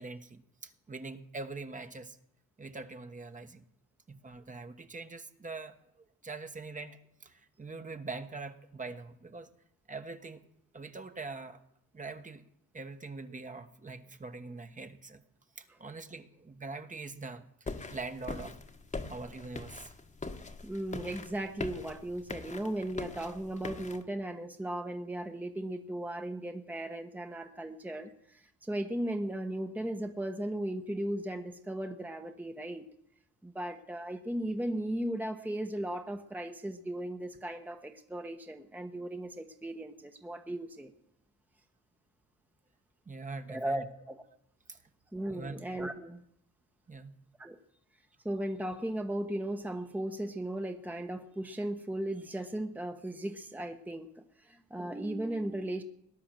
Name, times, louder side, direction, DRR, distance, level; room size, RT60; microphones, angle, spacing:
voice 1, 0.0-2.2 2.6-3.6 4.1-5.8 6.2-9.5 9.9-10.5 10.7-11.6 11.9-12.4 12.7-15.2 15.6-18.6 19.1-19.9 43.1-43.8 44.7-44.8 45.3-45.6 46.9-47.1, right 3 dB, 25° right, 7 dB, 1.3 m, -43 dB
sound 1, 17.7-24.0, left 3 dB, 25° left, 1.4 m, -42 dB
voice 2, 20.6-32.8 33.4-40.9 43.5-44.2 45.1-46.2 47.4-47.6 48.2-55.8, right 1 dB, 5° right, 6 dB, 1.1 m, -36 dB
18.0 x 10.0 x 7.7 m, 0.75 s
cardioid pair, 90°, 30 cm